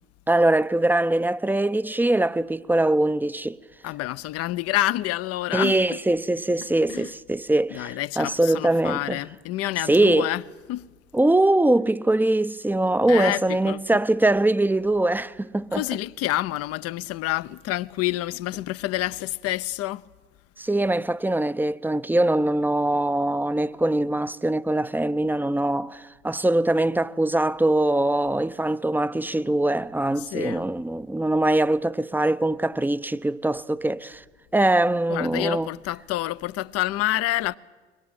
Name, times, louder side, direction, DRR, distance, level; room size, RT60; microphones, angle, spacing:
voice 1, 0.3-3.6 5.5-9.2 9.9-10.3 11.1-15.8 20.6-34.2 34.5-35.7, right 1 dB, 5° right, 0.7 m, -22 dB
voice 2, 3.8-6.0 6.9-7.1 7.7-10.8 13.1-14.0 15.7-20.1 30.2-30.7 35.1-37.6, left 16 dB, 45° left, 0.8 m, -28 dB
23.5 x 21.0 x 8.9 m
figure-of-eight pair, 55°, 33 cm